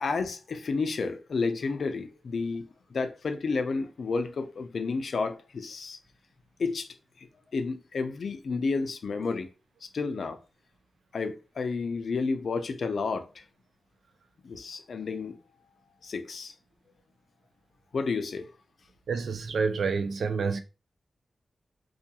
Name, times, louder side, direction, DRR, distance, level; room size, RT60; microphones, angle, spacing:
voice 1, 0.0-6.0 6.6-6.9 7.2-7.3 7.5-9.5 9.8-10.4 11.1-13.4 14.4-15.4 16.0-16.5 17.9-18.5, left 4 dB, 70° left, 0.4 m, -31 dB
voice 2, 19.1-20.6, right 5 dB, 80° right, 0.3 m, -28 dB
2.3 x 2.3 x 2.8 m
wide cardioid pair, 90°, 0 cm